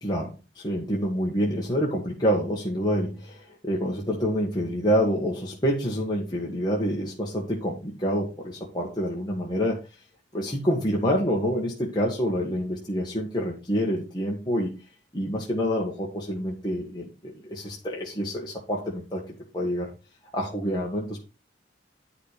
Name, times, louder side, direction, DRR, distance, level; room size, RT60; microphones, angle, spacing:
voice 1, 0.0-9.8 10.3-14.8 15.1-19.9 20.3-21.2, equal, 20° left, -3 dB, 1.6 m, -27 dB
10.0 x 6.0 x 5.0 m, 0.31 s
head